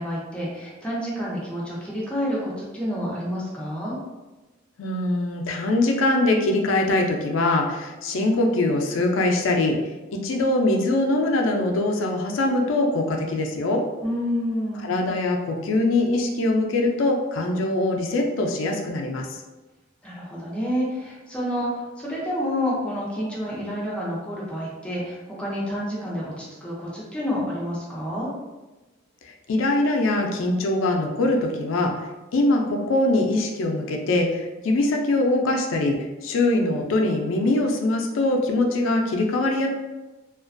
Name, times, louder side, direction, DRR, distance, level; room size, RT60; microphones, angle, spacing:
voice 1, 0.0-4.0 14.0-14.9 20.0-28.3, equal, 5° left, -6 dB, 0.6 m, -29 dB
voice 2, 4.8-9.8 10.2-13.8 14.8-19.4 29.2-31.9 32.3-39.7, left 2 dB, 80° left, 2 dB, 0.4 m, -22 dB
2.4 x 2.2 x 2.4 m, 1.1 s
head